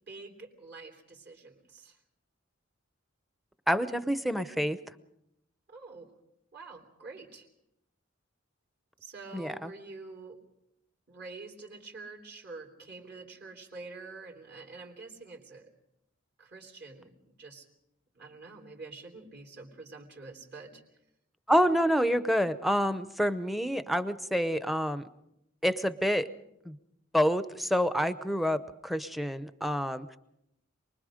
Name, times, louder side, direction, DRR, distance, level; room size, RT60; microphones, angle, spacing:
voice 1, 0.1-2.0 5.7-6.1 6.5-7.5 9.0-10.4 11.1-15.7 16.4-17.7 18.1-20.8, right 3 dB, 55° right, 0 dB, 3.3 m, -47 dB
voice 2, 3.7-4.8 9.3-9.7 21.5-25.0 25.6-26.3 26.6-26.8 27.1-30.2, equal, ahead, 12 dB, 0.7 m, -28 dB
28.0 x 20.5 x 5.1 m, 0.82 s
head